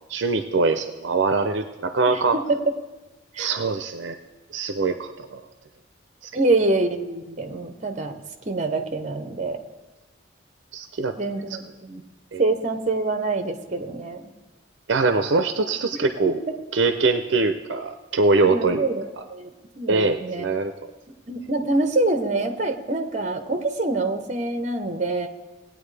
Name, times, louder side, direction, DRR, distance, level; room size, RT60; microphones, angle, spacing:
voice 1, 0.1-2.4 3.4-4.2 4.5-5.4 10.7-11.1 12.3-12.4 14.9-16.4 16.7-18.8 19.9-20.7, right 3 dB, 65° right, 8 dB, 0.5 m, -23 dB
voice 2, 2.1-2.6 3.3-3.5 6.3-8.2 8.5-9.6 11.2-12.0 12.4-14.3 18.5-19.0 19.3-20.5 21.3-25.3, right 2 dB, 35° right, 6 dB, 0.9 m, -25 dB
18.5 x 9.0 x 3.3 m, 1.1 s
head